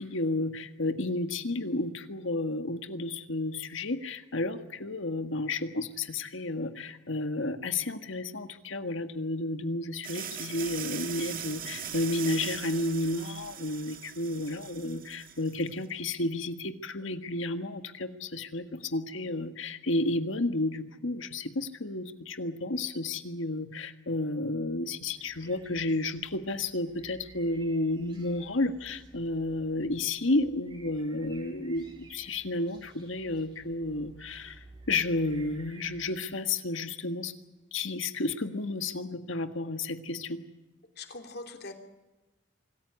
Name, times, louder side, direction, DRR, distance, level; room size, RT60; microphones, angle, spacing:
voice 1, 0.0-37.3 37.7-40.4, left 2 dB, 75° left, 8 dB, 1.6 m, -32 dB
sound 1, 10.0-15.7, right 8 dB, 45° right, 2.0 m, -40 dB
sound 2, 25.1-36.1, right 2 dB, 25° right, 3.6 m, -55 dB
voice 2, 40.9-41.7, left 3 dB, 50° left, 5 dB, 2.9 m, -42 dB
25.5 x 14.5 x 9.8 m, 1.1 s
head